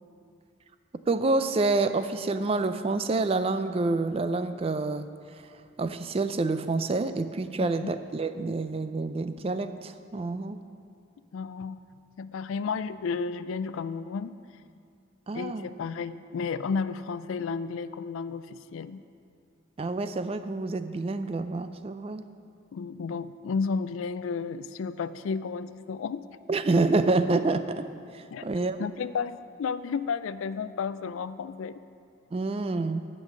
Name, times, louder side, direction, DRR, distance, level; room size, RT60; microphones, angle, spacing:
voice 1, 1.1-5.1 5.8-10.6 15.3-15.7 19.8-22.2 26.5-27.9 28.1-28.8 32.3-33.1, right 3 dB, 30° right, 11 dB, 0.3 m, -27 dB
voice 2, 11.3-11.8 12.2-14.4 15.3-19.0 22.7-26.2 28.3-28.5 28.8-31.8, left 5 dB, 90° left, 14 dB, 0.4 m, -32 dB
10.5 x 5.4 x 7.6 m, 2.3 s
head